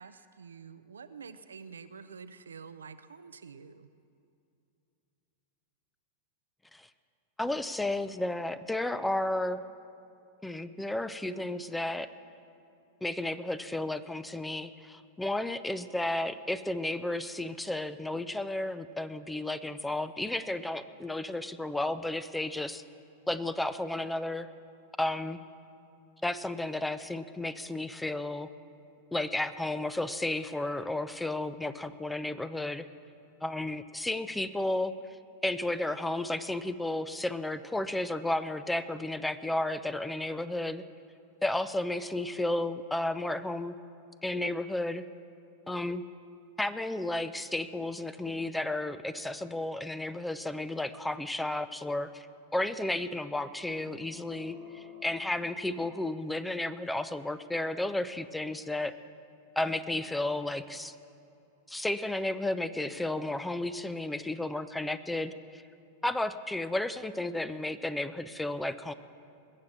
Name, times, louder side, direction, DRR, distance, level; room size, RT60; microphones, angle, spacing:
voice 1, 0.0-3.9, right 5 dB, 85° right, 12 dB, 0.5 m, -48 dB
voice 2, 7.4-9.6 10.4-12.1 13.0-22.8 23.3-24.5 25.0-25.4 26.2-28.5 29.1-32.9 33.4-34.9 35.4-40.8 41.4-43.8 44.2-45.0 45.7-46.0 46.6-52.3 52.5-58.9 59.6-60.9 61.7-65.6 66.0-68.9, left 1 dB, 5° left, 14 dB, 0.6 m, -33 dB
sound 1, 53.6-56.3, left 6 dB, 25° left, 4.7 m, -50 dB
20.5 x 7.7 x 7.3 m, 2.6 s
hypercardioid pair, 95°, 0 cm